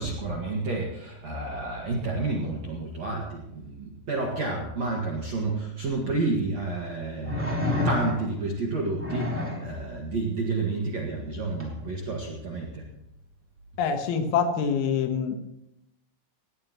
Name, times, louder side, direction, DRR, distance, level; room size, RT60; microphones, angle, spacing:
voice 1, 0.0-7.5 7.8-12.8, right 3 dB, 55° right, -2 dB, 2.0 m, -30 dB
sound 1, 5.9-6.0 7.2-8.4 9.0-9.7 11.6-11.7, left 2 dB, 10° right, 0.7 m, -28 dB
voice 2, 13.8-15.4, left 6 dB, 85° left, 6 dB, 4.1 m, -25 dB
19.5 x 16.0 x 3.1 m, 0.83 s
omnidirectional pair, 5.9 m